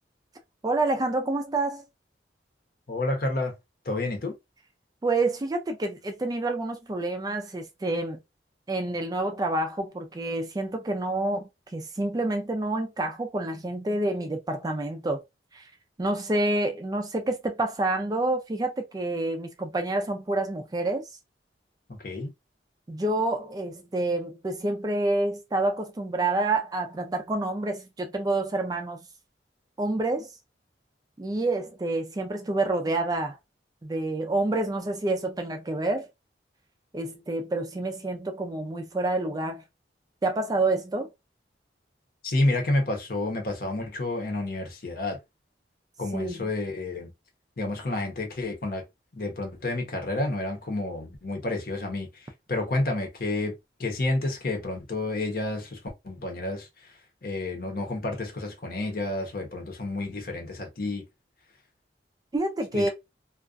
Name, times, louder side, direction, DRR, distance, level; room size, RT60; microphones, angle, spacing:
voice 1, 0.6-1.8 5.0-8.2 8.7-11.4 11.7-15.2 15.5-15.7 16.0-21.1 22.9-29.0 29.8-30.3 31.2-33.4 33.8-36.1 36.9-39.6 40.2-41.1 46.1-46.5 62.3-62.9, right 2 dB, 20° right, 0.3 m, -28 dB
voice 2, 2.9-3.5 3.8-4.3 22.0-22.3 42.2-45.2 46.0-47.1 47.6-48.8 49.1-53.5 53.8-56.7 57.2-61.0 62.7-62.9, left 2 dB, 55° left, 0.8 m, -30 dB
2.4 x 2.2 x 2.4 m
head